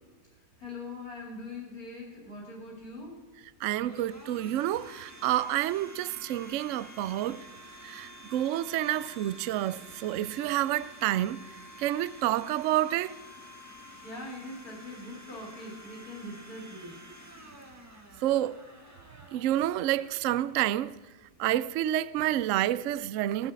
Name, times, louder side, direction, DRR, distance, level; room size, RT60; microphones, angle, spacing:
voice 1, 0.6-3.2 14.0-17.0, left 2 dB, 55° left, 3.2 m, -42 dB
Domestic sounds home sounds, 2.8-21.6, equal, 10° right, 1.4 m, -50 dB
voice 2, 3.6-7.4 7.8-11.4 11.8-13.1 18.2-18.6 19.3-20.9 21.4-23.5, right 13 dB, 85° right, 0.6 m, -29 dB
18.0 x 6.5 x 7.4 m
omnidirectional pair, 1.9 m